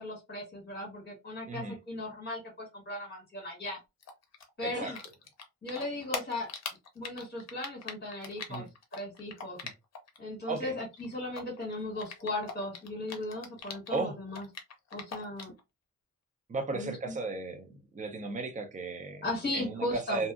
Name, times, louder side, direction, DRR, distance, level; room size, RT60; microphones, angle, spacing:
voice 1, 0.0-3.8 4.6-5.0 5.6-6.5 6.9-9.6 10.2-14.5 14.9-15.5 16.7-17.2 19.2-20.2, left 1 dB, 35° left, 1.4 m, -37 dB
Typing, 4.0-10.2 10.4-14.0 14.3-15.6, left 5 dB, 55° left, 0.7 m, -41 dB
voice 2, 4.6-4.9 8.5-8.7 10.5-10.7 13.9-14.2 16.5-19.2 19.5-20.3, right 3 dB, 25° right, 0.5 m, -35 dB
2.7 x 2.4 x 2.4 m
wide cardioid pair, 165°, 31 cm